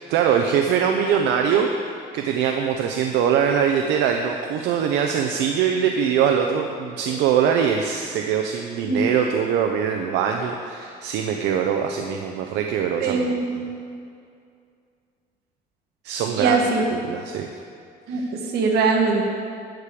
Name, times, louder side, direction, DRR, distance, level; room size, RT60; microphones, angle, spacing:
voice 1, 0.0-13.3 16.0-16.6 16.9-17.5 18.1-18.3, right 7 dB, 85° right, 4 dB, 0.7 m, -22 dB
voice 2, 13.0-13.5 16.4-16.8 18.1-19.2, right 4 dB, 65° right, 0 dB, 1.9 m, -21 dB
12.5 x 5.0 x 8.5 m, 2.4 s
cardioid pair, 145°, 17 cm